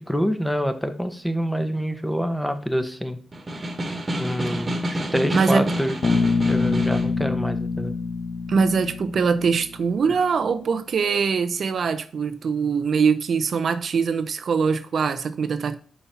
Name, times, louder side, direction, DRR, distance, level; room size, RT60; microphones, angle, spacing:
voice 1, 0.0-3.2 4.2-6.0 6.5-7.9, equal, 5° left, 1.0 m, -26 dB
Snare drum, 3.3-7.2, right 1 dB, 35° right, 1.4 m, -29 dB
voice 2, 5.3-5.7 8.5-15.8, right 5 dB, 65° right, 0.5 m, -22 dB
Bass guitar, 6.0-9.9, left 4 dB, 55° left, 0.9 m, -25 dB
5.6 x 4.3 x 5.6 m
cardioid pair, 75°, 0 cm